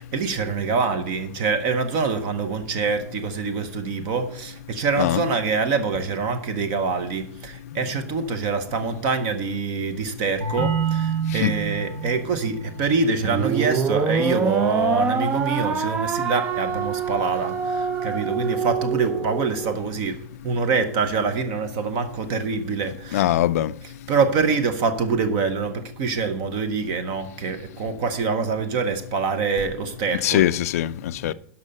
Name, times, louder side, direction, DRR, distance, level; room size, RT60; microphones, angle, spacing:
voice 1, 0.0-23.3 23.8-30.5 31.2-31.3, right 4 dB, 35° right, 0.8 m, -25 dB
sound 1, 10.4-15.9, right 5 dB, 65° right, 2.0 m, -30 dB
sound 2, 13.2-19.7, right 5 dB, 15° right, 0.4 m, -25 dB
voice 2, 23.1-23.7 30.2-31.3, left 13 dB, 70° left, 0.4 m, -21 dB
12.0 x 5.6 x 5.3 m
supercardioid pair, 175°, 8 cm